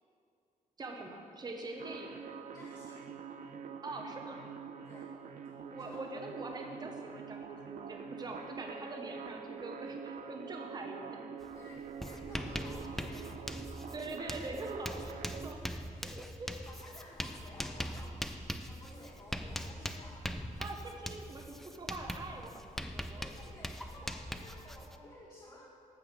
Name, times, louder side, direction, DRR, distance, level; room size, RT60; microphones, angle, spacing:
voice 1, 0.8-2.2 3.8-4.4 5.7-11.2 13.9-15.6 16.0-16.5 20.6-23.3, right 2 dB, 30° right, 2 dB, 1.1 m, -44 dB
sound 1, 1.8-15.5, right 6 dB, 60° right, 0.6 m, -46 dB
voice 2, 2.5-3.1 4.8-5.1 5.8-6.0 11.5-13.3 15.5-15.8 16.6-20.5 23.2-25.7, left 1 dB, 30° left, -6 dB, 1.5 m, -54 dB
Writing, 11.4-11.6 11.8-25.0, equal, ahead, 0.4 m, -41 dB
14.5 x 5.6 x 5.9 m, 2.5 s
wide cardioid pair, 155°, 14 cm